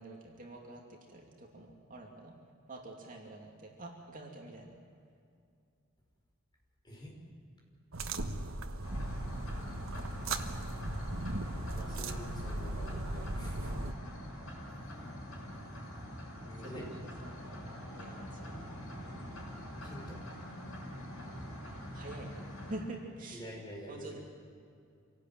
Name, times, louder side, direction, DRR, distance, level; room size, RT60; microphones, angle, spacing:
voice 1, 0.0-2.3 2.7-4.7 16.4-18.8 21.9-23.4 23.9-24.2, right 2 dB, 40° right, 0 dB, 2.7 m, -47 dB
voice 2, 6.8-7.2 11.7-13.9 14.6-14.8 16.5-17.1 19.8-20.2 23.3-24.2, equal, 20° left, -1 dB, 5.4 m, -47 dB
sound 1, 7.9-13.9, right 2 dB, 75° right, 1.4 m, -37 dB
sound 2, 8.8-22.8, equal, 75° left, 6.8 m, -44 dB
26.5 x 18.0 x 9.1 m, 2.4 s
head